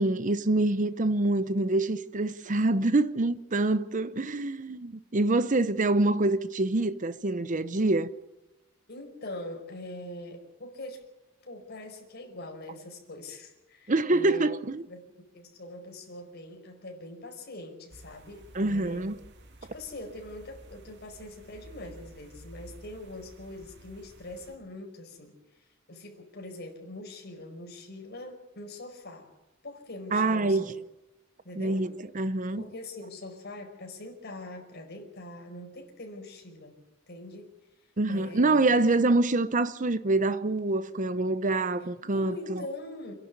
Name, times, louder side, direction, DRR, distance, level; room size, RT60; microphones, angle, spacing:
voice 1, 0.0-8.1 13.9-14.8 18.5-19.1 30.1-30.7 31.6-32.6 38.0-42.6, right 2 dB, 40° right, 0.8 m, -26 dB
voice 2, 8.9-11.0 11.4-14.5 14.9-19.1 19.7-29.3 29.6-30.7 31.4-31.8 32.6-36.8 37.1-37.5 38.1-38.7 42.0-43.1, left 1 dB, 55° left, 5.1 m, -43 dB
sound 1, 17.9-24.6, right 1 dB, 60° right, 2.2 m, -52 dB
28.0 x 11.5 x 9.6 m
head